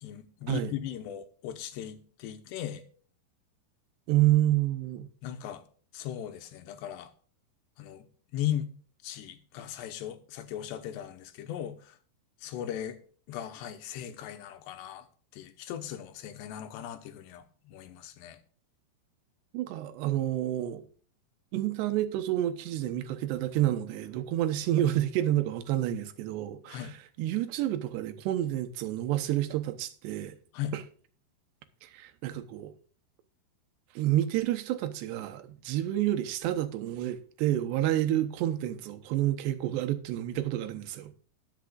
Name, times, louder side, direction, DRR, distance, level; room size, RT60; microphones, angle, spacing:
voice 1, 0.0-2.8 5.2-5.6 5.9-7.1 7.8-8.1 8.3-8.7 9.0-11.9 12.4-13.0 13.3-15.1 15.3-18.4 26.7-26.9 30.5-30.7, left 11 dB, 85° left, 3.3 m, -37 dB
voice 2, 4.1-5.1 19.5-20.8 21.5-30.4 30.7-30.8 31.8-32.7 34.0-41.1, right 13 dB, 85° right, 3.1 m, -29 dB
20.5 x 7.4 x 2.5 m
omnidirectional pair, 4.8 m